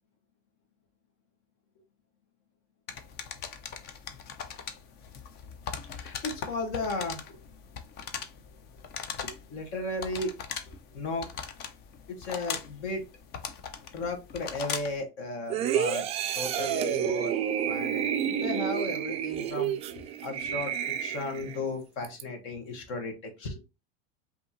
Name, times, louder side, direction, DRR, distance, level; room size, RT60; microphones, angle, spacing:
sound 1, 2.9-15.0, left 7 dB, 35° left, 0.6 m, -40 dB
voice 1, 5.9-7.4 9.2-10.3 10.9-11.3 12.1-13.0 13.9-16.0 16.3-17.3 17.7-20.7 21.0-23.6, left 2 dB, 55° left, 4 dB, 1.5 m, -35 dB
sound 2, 15.5-21.6 22.0-22.2, right 9 dB, 20° right, 0.3 m, -30 dB
5.1 x 2.9 x 2.9 m, 0.26 s
supercardioid pair, 150°, 29 cm